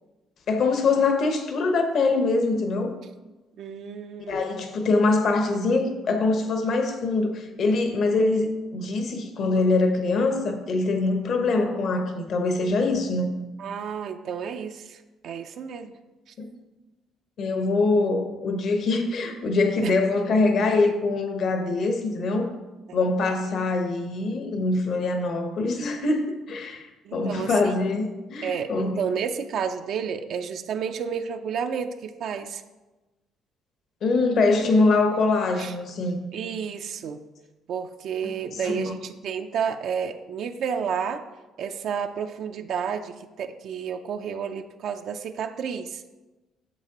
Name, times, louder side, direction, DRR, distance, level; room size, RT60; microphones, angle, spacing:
voice 1, 0.5-2.9 4.3-13.3 16.4-16.5 17.4-22.5 22.9-29.0 34.0-36.2 38.5-38.9, left 3 dB, 60° left, 5 dB, 1.0 m, -23 dB
voice 2, 3.6-4.4 13.6-15.9 19.8-19.9 22.9-23.0 27.0-27.8 28.4-32.6 35.6-35.7 36.3-37.2 37.7-41.2 41.6-46.0, right 7 dB, 65° right, 6 dB, 0.4 m, -31 dB
8.9 x 7.2 x 2.9 m, 1.1 s
cardioid pair, 100°, 0 cm